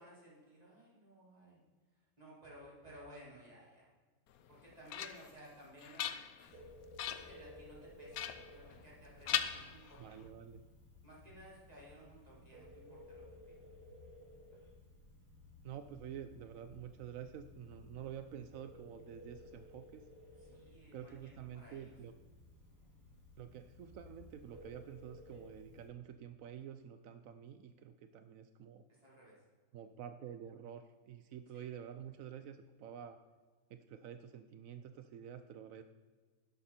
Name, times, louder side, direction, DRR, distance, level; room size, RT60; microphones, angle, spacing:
voice 1, 0.0-1.6 1.9-3.9 4.5-6.6 7.0-8.2 8.5-10.2 11.0-13.5 20.4-21.9 28.9-29.4 31.5-31.7, equal, 20° right, -6 dB, 4.6 m, -57 dB
sound 1, 4.4-5.4 5.8-6.6 7.0-7.4 8.1-9.0 9.3-10.2, left 9 dB, 65° left, 0.9 m, -40 dB
Telephone, 6.4-25.9, left 1 dB, 55° right, 4.9 m, -57 dB
voice 2, 10.0-10.6 15.6-20.0 20.9-22.1 23.4-28.8 29.7-33.2 33.7-35.8, right 9 dB, 70° right, 9 dB, 0.8 m, -49 dB
12.0 x 11.0 x 4.3 m, 1.4 s
omnidirectional pair, 2.1 m